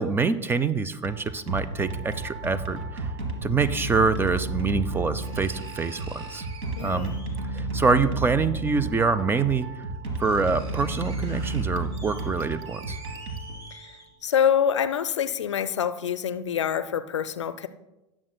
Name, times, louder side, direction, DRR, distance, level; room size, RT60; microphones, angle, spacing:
voice 1, 0.0-3.1 3.4-6.4 6.8-7.1 7.5-9.7 10.2-13.0, right 4 dB, 15° right, 15 dB, 0.4 m, -25 dB
sound 1, 0.9-14.1, right 2 dB, 60° right, 1.4 m, -32 dB
sound 2, 5.2-7.5 8.9-9.0 9.6-9.7 9.9-14.4 14.8-14.9, right 2 dB, 35° right, 2.4 m, -47 dB
voice 2, 6.8-7.2 13.7-13.9 14.2-17.7, left 8 dB, 75° left, 13 dB, 0.5 m, -26 dB
18.0 x 7.1 x 2.2 m, 1.0 s
figure-of-eight pair, 80°, 15 cm